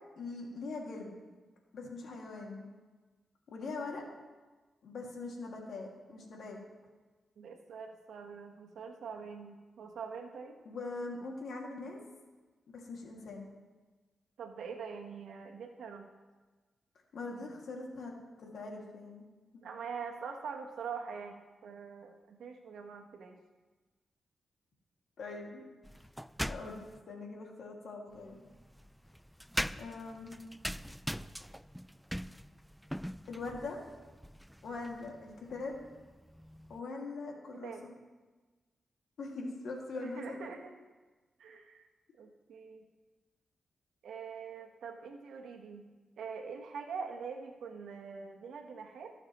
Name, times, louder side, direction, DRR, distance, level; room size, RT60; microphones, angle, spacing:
voice 1, 0.2-1.3 1.7-2.7 3.5-4.0 4.8-6.6 10.7-12.0 12.7-13.5 17.1-18.1 18.4-19.2 25.2-25.6 26.5-26.8 27.1-28.4 29.8-30.4 33.3-33.8 34.6-35.7 36.7-37.9 39.2-40.5, left 3 dB, 75° left, 0 dB, 2.2 m, -42 dB
voice 2, 7.4-10.6 14.4-16.1 19.6-23.4 37.5-37.9 40.0-40.7 41.4-41.9 42.2-42.9 44.0-45.9 46.2-49.1, right 6 dB, 85° right, 3 dB, 1.2 m, -44 dB
sound 1, 25.8-27.0 28.1-36.8, equal, ahead, 0.3 m, -42 dB
19.0 x 6.6 x 3.1 m, 1.3 s
cardioid pair, 55°, 0 cm